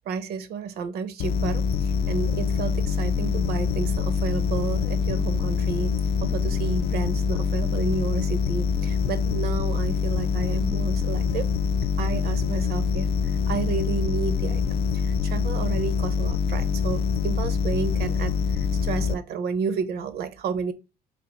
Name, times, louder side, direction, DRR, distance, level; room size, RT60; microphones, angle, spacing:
voice 1, 0.1-11.5 12.0-20.7, right 5 dB, 70° right, 0.7 m, -31 dB
sound 1, 1.2-19.1, left 6 dB, 70° left, 0.4 m, -25 dB
3.5 x 2.8 x 3.9 m
cardioid pair, 110°, 17 cm